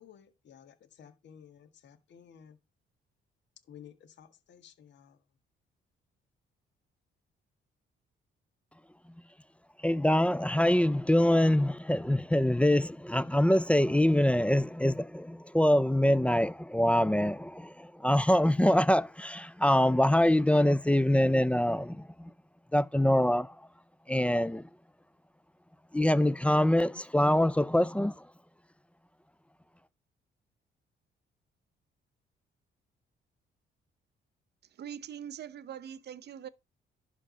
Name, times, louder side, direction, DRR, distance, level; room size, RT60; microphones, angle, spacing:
voice 1, 0.0-2.6 3.6-5.2, left 8 dB, 65° left, 1.6 m, -54 dB
voice 2, 9.8-22.3 22.7-23.6 24.1-24.6 25.9-28.2, left 1 dB, 5° left, 0.4 m, -25 dB
voice 3, 34.8-36.5, right 9 dB, 55° right, 0.8 m, -42 dB
11.0 x 3.8 x 6.2 m
cardioid pair, 90°, 20 cm